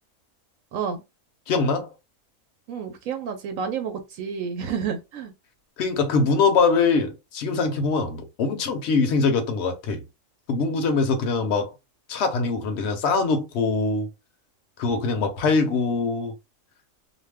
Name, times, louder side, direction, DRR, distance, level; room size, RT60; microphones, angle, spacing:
voice 1, 1.5-1.9 5.8-10.0 10.5-11.7 12.1-14.1 14.8-16.3, left 4 dB, 60° left, 0.9 m, -23 dB
voice 2, 2.7-5.3, right 7 dB, 75° right, 0.9 m, -30 dB
2.6 x 2.2 x 3.3 m
omnidirectional pair, 1.4 m